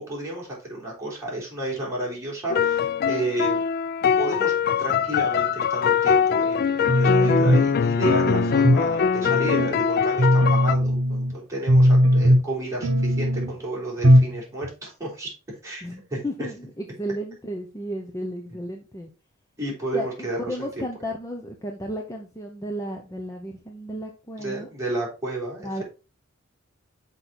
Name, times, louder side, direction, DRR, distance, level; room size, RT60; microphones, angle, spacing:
voice 1, 0.0-3.7 4.2-4.5 4.8-15.3 15.6-16.2 19.6-20.8 24.4-25.7, right 1 dB, 15° right, -5 dB, 3.7 m, -31 dB
sound 1, 2.5-10.8, left 7 dB, 45° left, 0.3 m, -22 dB
sound 2, 6.9-7.7 8.0-8.9 9.2-9.7 10.2-11.3 11.7-12.5 12.8-13.5 14.0-14.4 14.6-14.7, equal, 70° right, 1.1 m, -19 dB
voice 2, 15.8-19.1 19.9-24.7 25.6-25.8, equal, 15° left, 2 dB, 0.8 m, -33 dB
6.4 x 5.2 x 4.2 m, 0.32 s
head